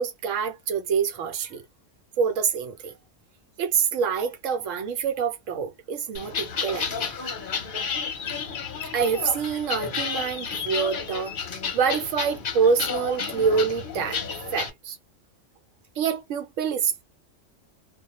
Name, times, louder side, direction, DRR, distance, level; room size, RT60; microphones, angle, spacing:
voice 1, 0.0-1.6 2.2-2.9 3.6-7.1 8.9-11.3 11.7-14.2 14.5-15.0 16.0-17.0, right 6 dB, 85° right, 1.1 m, -26 dB
sound 1, 6.1-14.7, left 6 dB, 50° left, 0.8 m, -31 dB
2.3 x 2.2 x 2.8 m
omnidirectional pair, 1.3 m